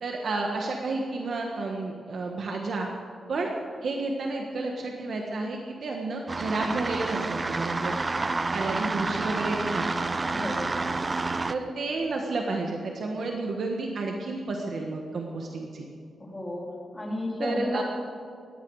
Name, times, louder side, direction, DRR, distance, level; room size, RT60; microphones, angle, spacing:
voice 1, 0.0-2.9 3.3-3.5 3.8-7.9 8.5-9.9 11.5-15.8 17.4-17.8, right 3 dB, 55° right, 1 dB, 1.5 m, -31 dB
sound 1, 6.3-11.5, right 3 dB, 20° right, 0.5 m, -29 dB
voice 2, 10.3-10.8 16.2-17.8, left 1 dB, 15° left, -2 dB, 3.4 m, -32 dB
19.0 x 15.5 x 4.9 m, 2.4 s
wide cardioid pair, 170°, 0 cm